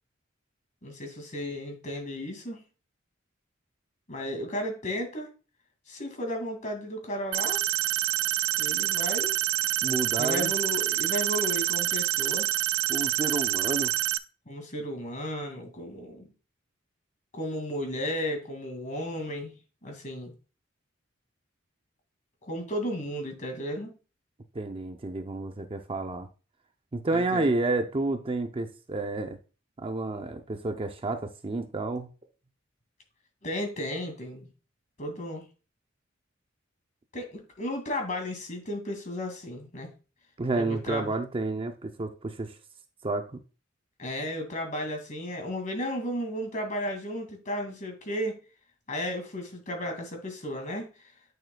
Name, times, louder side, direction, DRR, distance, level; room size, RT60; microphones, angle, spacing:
voice 1, 0.8-2.6 4.1-5.3 5.9-7.6 8.6-9.4 10.2-12.5 14.5-16.3 17.3-19.5 19.8-20.3 22.4-23.9 27.1-27.4 33.4-34.5 35.0-35.4 37.1-39.9 40.5-41.1 44.0-48.4 48.9-50.9, equal, 40° left, 2.2 m, -34 dB
sound 1, 7.3-14.2, right 15 dB, 85° right, 0.5 m, -27 dB
voice 2, 9.8-10.5 12.9-13.9 24.5-26.3 26.9-29.4 29.8-32.1 40.4-42.6 43.0-43.4, right 2 dB, 25° right, 0.5 m, -30 dB
8.9 x 6.4 x 2.2 m
head